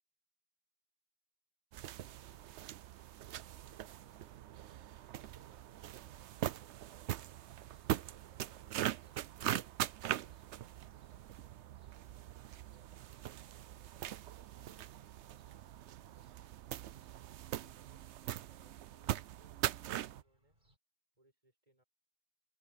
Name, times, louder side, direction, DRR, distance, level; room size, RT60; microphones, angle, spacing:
sound 1, 1.7-20.2, right 12 dB, 80° right, 0.9 m, -42 dB
sound 2, 7.3-20.8, right 1 dB, 50° right, 4.5 m, -76 dB
voice 1, 12.7-13.3 17.6-20.6 21.2-21.8, right 1 dB, 30° right, 7.0 m, -73 dB
open air
omnidirectional pair, 1.2 m